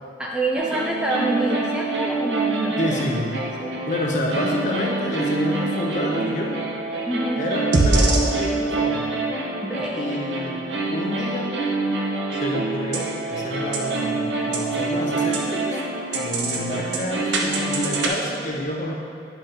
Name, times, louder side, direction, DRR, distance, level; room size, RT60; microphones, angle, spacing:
voice 1, 0.2-3.1 3.6-3.7 7.1-7.5 9.6-10.2, right 1 dB, 5° right, -2 dB, 0.3 m, -26 dB
sound 1, 0.5-18.1, right 2 dB, 70° right, 0.8 m, -25 dB
voice 2, 2.8-3.3 3.9-6.6 7.4-9.1 9.9-11.5 12.3-15.8 16.1-18.9, left 1 dB, 40° left, -1 dB, 0.8 m, -28 dB
9.9 x 5.8 x 2.6 m, 2.3 s
head